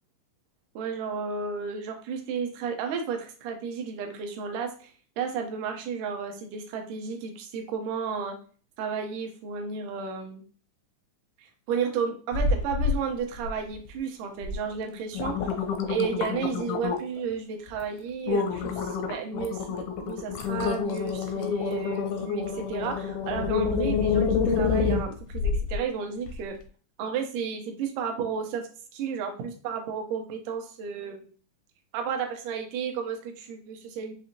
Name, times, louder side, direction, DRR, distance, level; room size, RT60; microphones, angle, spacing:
voice 1, 0.8-8.4 8.8-10.4 11.4-15.5 15.9-26.6 27.0-31.3 31.9-34.1, right 6 dB, 75° right, 4 dB, 2.1 m, -33 dB
sound 1, 12.3-13.0 13.3-13.9 14.4-14.6 14.9-17.2 17.7-17.8 18.3-25.8 26.3-26.4, left 5 dB, 80° left, 1.7 m, -27 dB
5.9 x 2.7 x 2.7 m, 0.41 s
omnidirectional pair, 4.0 m